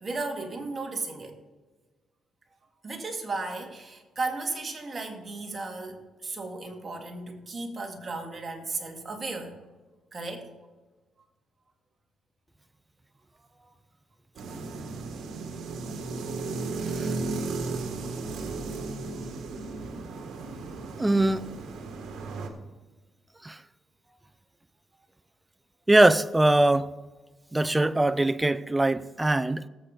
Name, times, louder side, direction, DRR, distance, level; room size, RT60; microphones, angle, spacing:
voice 1, 0.0-1.4 2.8-9.5 10.1-10.5 13.5-13.8 19.1-19.2 24.1-24.2, right 3 dB, 35° right, 2.1 m, -35 dB
sound 1, 14.4-22.5, right 3 dB, 70° right, 1.6 m, -35 dB
voice 2, 21.0-21.5 23.4-23.6 25.9-26.9 27.5-29.7, right 2 dB, 15° right, 0.5 m, -22 dB
18.0 x 8.0 x 4.0 m
cardioid pair, 90°, 0 cm